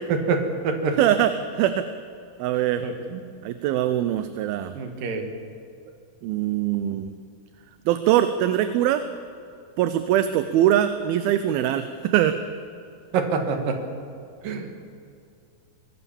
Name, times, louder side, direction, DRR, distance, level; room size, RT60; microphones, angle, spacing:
voice 1, 0.1-1.0 2.8-3.2 4.7-5.3 13.1-13.8 14.4-14.7, right 4 dB, 65° right, 5 dB, 3.4 m, -26 dB
voice 2, 1.0-1.9 2.4-2.8 3.4-4.7 6.2-7.2 7.9-9.0 9.8-12.4, right 11 dB, 80° right, 10 dB, 2.6 m, -22 dB
24.5 x 18.5 x 7.2 m, 2.4 s
omnidirectional pair, 4.4 m